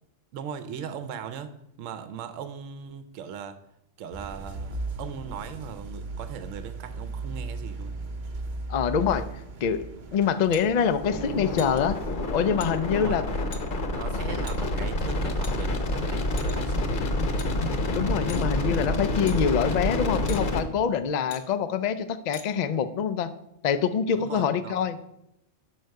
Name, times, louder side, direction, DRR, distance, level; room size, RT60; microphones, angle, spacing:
voice 1, 0.3-1.5 1.8-3.6 4.0-8.0 12.9-13.5 13.9-16.9 24.1-24.8, right 8 dB, 80° right, 10 dB, 1.0 m, -39 dB
sound 1, 4.1-12.2, right 2 dB, 45° right, 0.8 m, -37 dB
voice 2, 8.7-9.2 9.6-9.8 10.1-12.0 12.3-13.2 17.9-23.3 23.6-25.0, left 7 dB, 80° left, 12 dB, 0.3 m, -25 dB
sound 2, 10.5-10.7 11.6-11.8 12.6-12.7 13.5-13.6 14.5-14.6 15.4-15.9 16.4-16.7 17.4-17.5 18.3-18.5 19.3-19.4 20.3-20.4 21.3-21.4 22.3-22.5, left 5 dB, 65° left, 1.2 m, -42 dB
sound 3, 11.0-20.6, left 1 dB, 45° left, 0.9 m, -28 dB
6.3 x 4.6 x 6.4 m, 0.82 s
omnidirectional pair, 1.3 m